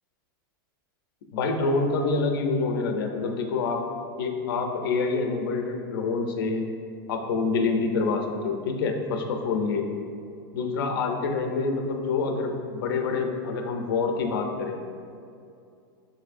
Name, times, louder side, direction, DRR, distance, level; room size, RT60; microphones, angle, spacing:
voice 1, 1.3-3.8 4.2-6.7 7.1-9.9 10.5-14.8, left 4 dB, 75° left, 4 dB, 0.6 m, -26 dB
7.0 x 2.6 x 2.5 m, 2.5 s
supercardioid pair, 170°, 12 cm